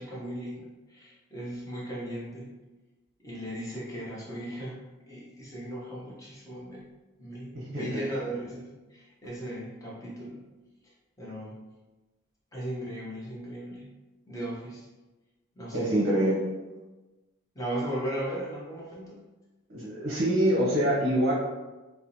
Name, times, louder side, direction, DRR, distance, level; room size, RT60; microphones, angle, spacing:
voice 1, 0.0-2.5 3.2-4.8 5.1-6.9 7.2-10.4 11.2-11.6 12.5-13.9 14.3-14.9 15.6-16.0 17.5-19.2, right 1 dB, 15° left, -6 dB, 0.7 m, -37 dB
voice 2, 7.5-8.0 15.7-16.4 19.7-21.3, right 1 dB, 50° right, -5 dB, 0.7 m, -25 dB
4.3 x 2.0 x 2.6 m, 1.1 s
head